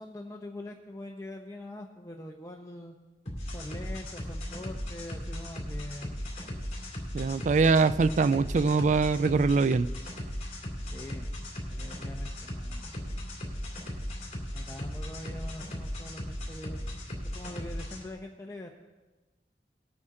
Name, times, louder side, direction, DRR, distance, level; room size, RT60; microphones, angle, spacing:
voice 1, 0.0-3.0 3.5-6.2 10.8-11.3 11.7-12.9 14.5-16.8 17.3-18.7, left 1 dB, 15° left, 1 dB, 0.7 m, -43 dB
sound 1, 3.3-18.0, equal, 40° left, 2.8 m, -37 dB
voice 2, 7.1-9.9, right 4 dB, 45° right, 16 dB, 0.3 m, -23 dB
19.0 x 8.6 x 3.7 m, 1.2 s
head